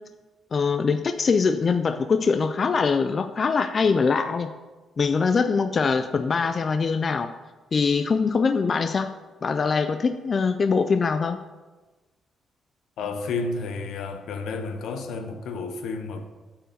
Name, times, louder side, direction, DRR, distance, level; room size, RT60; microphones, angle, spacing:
voice 1, 0.5-4.5 5.0-7.3 7.7-9.1 9.4-11.4, left 5 dB, 30° left, 9 dB, 0.3 m, -23 dB
voice 2, 13.0-16.3, left 4 dB, 80° left, 6 dB, 1.0 m, -31 dB
8.9 x 4.6 x 6.7 m, 1.2 s
cardioid pair, 155°, 0 cm